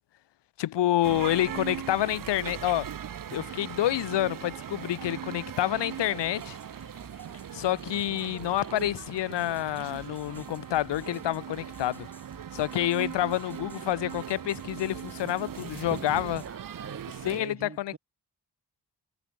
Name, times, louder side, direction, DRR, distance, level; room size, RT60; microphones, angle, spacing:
voice 1, 0.6-2.9 3.3-6.6 7.5-12.1 12.5-16.5 17.2-17.9, left 13 dB, 85° left, 0.7 m, -28 dB
sound 1, 1.0-17.4, right 9 dB, 55° right, 0.7 m, -39 dB
sound 2, 2.4-16.0, left 3 dB, 35° left, 3.8 m, -58 dB
sound 3, 5.9-16.5, left 1 dB, 5° left, 2.5 m, -56 dB
voice 2, 16.4-18.0, right 4 dB, 35° right, 1.7 m, -44 dB
cardioid pair, 70°, 41 cm